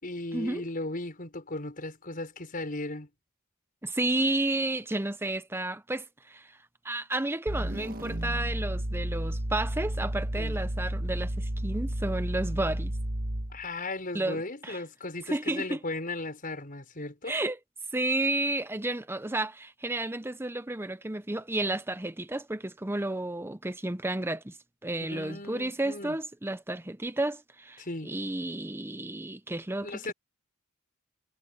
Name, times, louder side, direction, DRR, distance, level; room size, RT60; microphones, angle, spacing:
voice 1, 0.0-3.1 10.4-10.6 13.5-17.4 25.0-26.2 27.8-28.1 29.8-30.1, left 2 dB, 40° left, 5.9 m, -36 dB
voice 2, 3.8-6.5 6.8-12.9 14.1-14.8 15.3-15.8 17.3-17.6 17.9-24.6 24.8-30.1, right 2 dB, 10° right, 0.7 m, -32 dB
sound 1, 7.5-13.6, right 1 dB, 45° right, 1.7 m, -32 dB
head